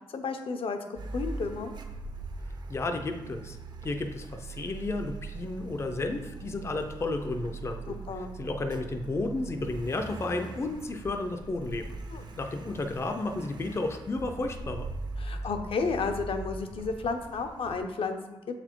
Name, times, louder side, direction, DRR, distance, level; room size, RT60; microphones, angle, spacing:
voice 1, 0.1-0.8 1.1-1.7 7.9-8.3 12.1-12.3 15.2-18.4, left 4 dB, 60° left, 6 dB, 0.7 m, -32 dB
Car, 0.9-17.8, right 3 dB, 45° right, 0.6 m, -41 dB
voice 2, 2.7-3.6 3.8-7.9 8.4-12.0 12.4-14.9, left 2 dB, 25° left, 6 dB, 0.5 m, -32 dB
7.2 x 4.1 x 4.5 m, 1.0 s
wide cardioid pair, 160°, 10 cm